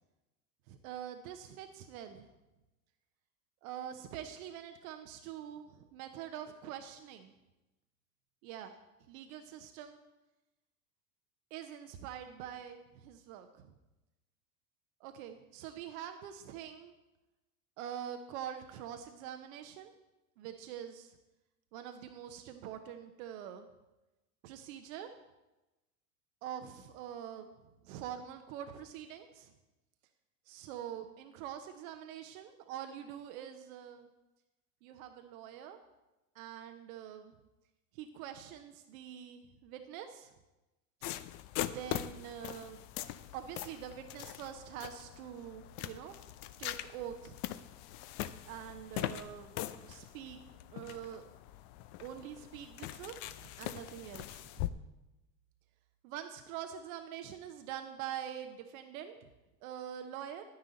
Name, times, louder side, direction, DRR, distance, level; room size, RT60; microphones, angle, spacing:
voice 1, 0.7-2.3 3.6-7.3 8.4-8.7 9.1-10.0 11.5-13.7 15.0-16.9 17.8-19.9 20.4-21.2 21.7-23.7 24.4-25.1 26.4-27.5 27.8-29.5 30.5-34.1 34.8-35.8 36.3-37.3 37.9-40.3 41.6-42.8 43.3-46.2 46.6-47.4 48.4-50.4 50.7-51.3 52.0-54.8 56.0-59.3 59.6-60.4, right 10 dB, 60° right, 7 dB, 1.0 m, -45 dB
sound 1, 41.0-54.7, left 13 dB, 50° left, 0.6 m, -42 dB
10.0 x 9.7 x 4.0 m, 1.0 s
hypercardioid pair, 85°, 46 cm